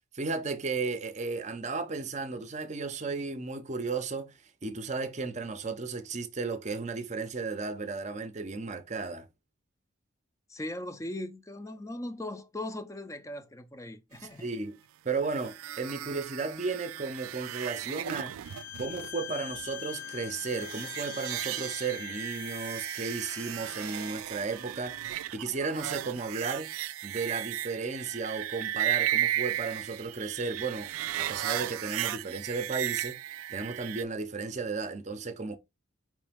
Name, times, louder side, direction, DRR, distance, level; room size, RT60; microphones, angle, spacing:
voice 1, 0.1-9.3 14.2-14.8 15.0-18.4 18.8-26.7 27.0-30.9 31.2-35.6, right 4 dB, 35° right, 0.6 m, -34 dB
voice 2, 10.5-14.5, left 1 dB, 15° left, 0.4 m, -39 dB
sound 1, 15.2-34.0, right 13 dB, 85° right, 0.3 m, -35 dB
Bowed string instrument, 18.4-24.2, left 11 dB, 55° left, 0.6 m, -43 dB
4.9 x 3.1 x 3.4 m
head